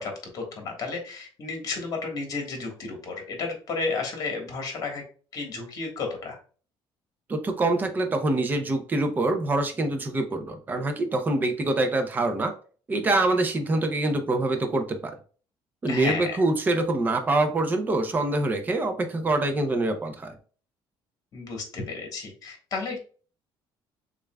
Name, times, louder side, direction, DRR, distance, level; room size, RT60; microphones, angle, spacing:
voice 1, 0.0-5.0 5.3-6.4 15.9-16.4 21.3-23.0, left 4 dB, 40° left, 2 dB, 1.3 m, -32 dB
voice 2, 7.3-12.5 12.9-15.1 15.8-20.3, right 2 dB, 20° right, 6 dB, 0.6 m, -25 dB
6.6 x 2.5 x 2.2 m, 0.39 s
cardioid pair, 165°, 9 cm